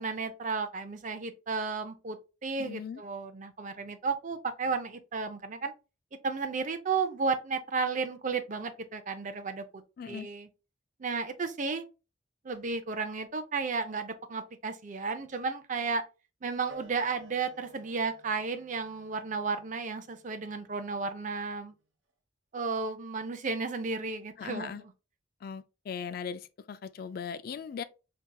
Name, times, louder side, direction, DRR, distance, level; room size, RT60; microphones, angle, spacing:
voice 1, 0.0-2.2 2.4-5.7 6.2-10.5 11.0-11.9 12.4-16.0 16.4-21.7 22.5-24.7, right 4 dB, 40° right, 0.5 m, -33 dB
voice 2, 2.6-3.0 10.0-10.3 24.4-24.8 25.4-27.8, left 6 dB, 50° left, 0.3 m, -39 dB
Wind instrument woodwind instrument, 16.7-21.8, right 1 dB, 70° right, 0.9 m, -55 dB
4.9 x 2.8 x 2.2 m
head